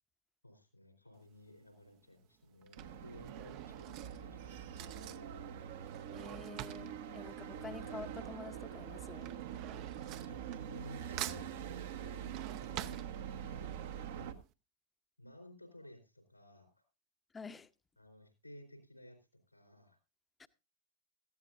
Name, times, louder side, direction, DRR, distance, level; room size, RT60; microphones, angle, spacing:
voice 1, 0.4-5.4 10.1-11.4 12.7-13.6 13.9-14.4 15.2-16.8 18.0-19.2 19.5-20.0, equal, 90° left, 4.2 m, -56 dB
Drawer open or close / Cutlery silverware, 1.2-1.6 2.4-8.3 8.5-10.9 11.2-13.7 14.1-14.2 14.4-14.5, right 13 dB, 40° right, 0.7 m, -48 dB
sound 1, 2.8-14.3, right 9 dB, 55° right, 1.1 m, -44 dB
voice 2, 6.1-9.4 17.3-17.7 20.4-20.5, left 4 dB, 15° left, 0.8 m, -49 dB
17.5 x 14.5 x 2.6 m
figure-of-eight pair, 90°, 0 cm